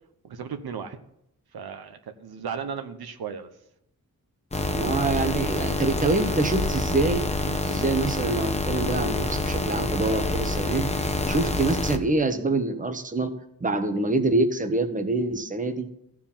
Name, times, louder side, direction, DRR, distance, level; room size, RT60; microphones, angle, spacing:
voice 1, 0.2-1.0 1.5-3.5, right 7 dB, 80° right, 8 dB, 1.0 m, -35 dB
sound 1, 4.5-12.0, left 2 dB, 20° left, 1.0 m, -27 dB
voice 2, 4.7-10.9 11.3-13.3 13.6-15.9, right 2 dB, 20° right, 8 dB, 1.1 m, -25 dB
14.5 x 4.9 x 7.2 m, 0.78 s
cardioid pair, 85°, 37 cm